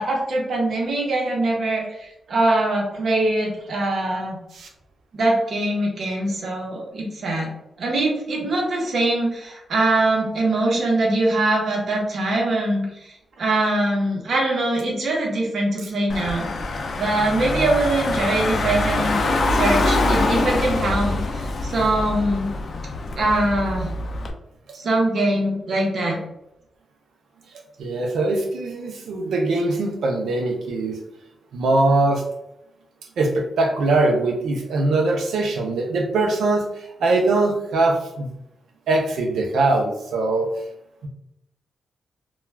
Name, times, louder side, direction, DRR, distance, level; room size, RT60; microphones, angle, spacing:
voice 1, 0.0-4.4 5.1-7.5 7.8-16.5 17.0-19.2 19.5-22.5 23.2-23.9 24.7-26.2, right 2 dB, 65° right, -1 dB, 0.9 m, -22 dB
Car / Engine, 16.1-24.3, left 2 dB, 60° left, 0.4 m, -24 dB
voice 2, 27.8-31.0 31.5-32.2 33.2-38.3 38.9-40.5, right 2 dB, 85° right, 1 dB, 0.5 m, -22 dB
2.3 x 2.2 x 3.2 m, 0.83 s
cardioid pair, 80°, 0 cm